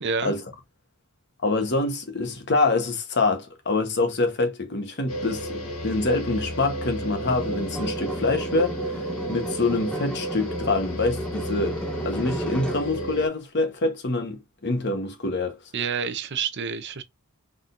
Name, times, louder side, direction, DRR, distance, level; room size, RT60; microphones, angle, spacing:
voice 1, 0.0-0.3 15.7-17.0, right 6 dB, 55° right, 0.6 m, -28 dB
voice 2, 1.4-8.8 9.3-15.6, left 3 dB, 50° left, 1.1 m, -25 dB
sound 1, 5.1-13.3, right 1 dB, 80° left, 1.4 m, -33 dB
sound 2, 7.3-12.9, right 1 dB, 5° left, 0.8 m, -34 dB
4.2 x 3.6 x 2.5 m
head